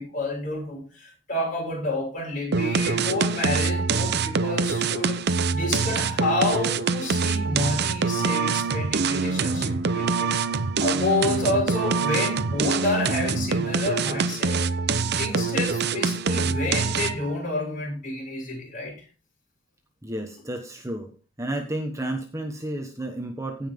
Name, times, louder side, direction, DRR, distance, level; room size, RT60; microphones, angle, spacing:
voice 1, 0.0-5.2 5.5-10.4 10.8-14.8 15.1-19.1, left 2 dB, 40° left, 6.3 m, -29 dB
sound 1, 2.5-17.3, right 4 dB, 50° right, 0.6 m, -25 dB
voice 2, 20.0-21.1 21.4-23.7, right 1 dB, 15° right, 1.2 m, -31 dB
17.0 x 5.8 x 3.6 m
head